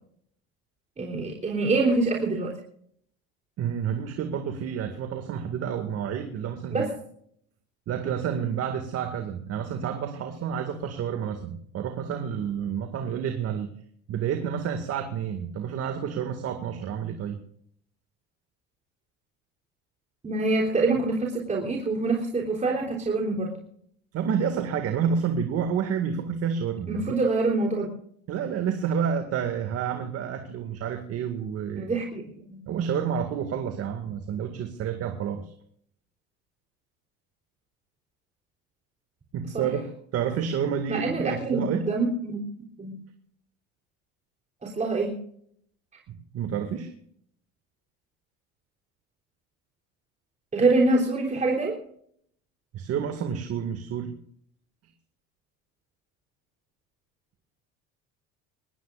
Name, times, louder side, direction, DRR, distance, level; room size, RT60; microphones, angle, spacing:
voice 1, 1.0-2.6 6.7-6.9 20.2-23.5 26.9-27.9 31.8-32.6 39.5-39.7 40.9-42.4 42.8-43.0 44.6-45.2 50.5-51.8, right 3 dB, 25° right, -1 dB, 3.5 m, -25 dB
voice 2, 3.6-6.8 7.9-13.7 14.1-17.4 24.1-27.2 28.3-31.9 32.7-35.5 39.3-39.9 40.1-41.9 46.1-46.9 52.7-54.1, right 7 dB, 50° right, 6 dB, 2.2 m, -29 dB
22.5 x 18.5 x 2.5 m, 0.66 s
supercardioid pair, 105°, 30 cm